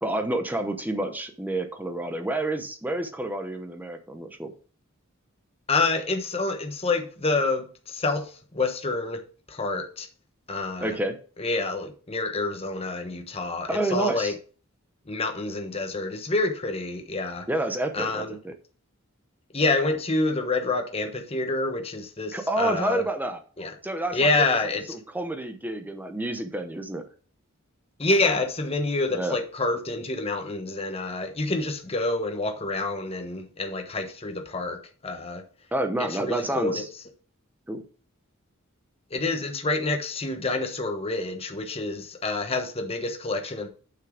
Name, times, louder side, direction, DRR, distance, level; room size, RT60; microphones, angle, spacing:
voice 1, 0.0-4.5 10.8-11.2 13.7-14.3 17.5-18.5 22.3-23.4 23.8-24.5 24.9-27.0 29.1-29.4 35.7-36.9 37.7-37.8, right 1 dB, 10° right, 0.8 m, -29 dB
voice 2, 5.7-9.2 9.5-10.1 10.5-11.0 11.4-14.3 15.1-17.5 17.9-18.4 19.5-23.0 23.6-23.7 24.1-24.8 28.0-35.4 36.0-36.8 39.1-43.7, left 2 dB, 30° left, 1.1 m, -27 dB
6.5 x 6.0 x 5.1 m
head